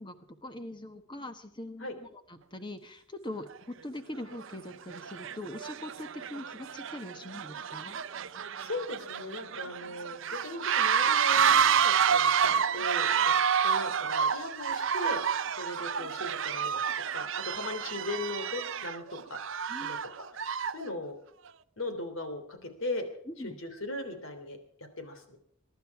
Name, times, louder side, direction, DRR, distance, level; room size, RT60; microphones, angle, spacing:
voice 1, 0.0-8.0 19.7-20.1 23.3-23.6, left 1 dB, 20° left, 8 dB, 1.3 m, -42 dB
sound 1, 3.5-3.6 4.3-4.5 4.9-20.9, right 7 dB, 60° right, 0.6 m, -29 dB
voice 2, 8.6-13.3 13.6-15.2 15.6-16.8 17.1-20.0 20.3-21.2 21.8-23.0 23.4-25.4, left 2 dB, 65° left, 7 dB, 3.2 m, -38 dB
23.0 x 11.5 x 4.8 m, 0.67 s
head